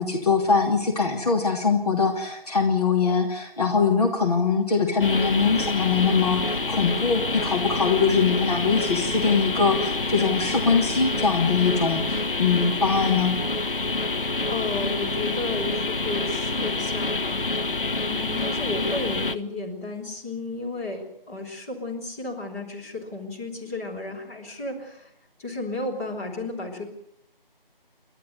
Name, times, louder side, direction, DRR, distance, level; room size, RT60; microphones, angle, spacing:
voice 1, 0.0-13.4, left 5 dB, 40° left, 1 dB, 2.9 m, -22 dB
sound 1, 5.0-19.4, left 2 dB, 65° left, 1.5 m, -27 dB
voice 2, 14.5-25.1 25.4-26.8, left 2 dB, 15° left, -3 dB, 4.4 m, -33 dB
30.0 x 13.0 x 9.4 m, 0.74 s
figure-of-eight pair, 165°, 29 cm